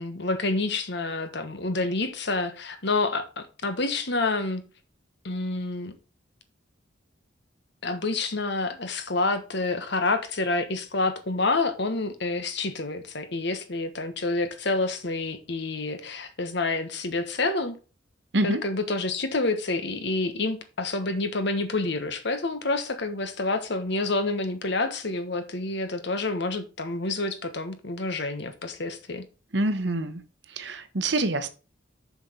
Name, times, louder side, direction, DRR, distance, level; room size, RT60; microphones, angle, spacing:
voice 1, 0.0-4.6 5.2-5.9 7.8-17.8 18.4-29.3, left 3 dB, 60° left, 1.3 m, -28 dB
voice 2, 29.5-30.2 30.6-31.5, right 2 dB, 60° right, 1.1 m, -26 dB
7.0 x 6.2 x 5.6 m
head